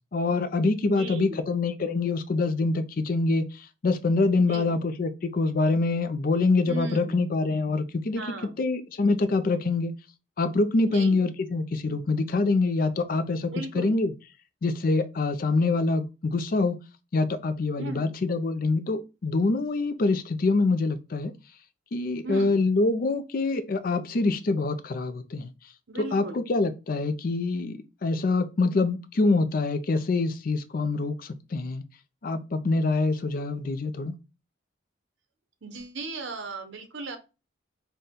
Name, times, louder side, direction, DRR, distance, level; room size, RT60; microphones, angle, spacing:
voice 1, 0.1-3.4 3.8-8.2 8.6-9.9 10.4-14.1 14.6-16.8 17.1-21.3 21.9-25.5 26.1-31.8 32.2-34.1, left 3 dB, 50° left, 0.4 m, -25 dB
voice 2, 0.8-1.5 4.3-4.8 6.6-7.2 8.1-8.6 10.9-11.2 13.5-14.0 17.8-18.2 22.2-22.6 25.9-26.4 35.6-37.2, right 2 dB, 75° right, 0.8 m, -37 dB
4.0 x 2.2 x 3.6 m
head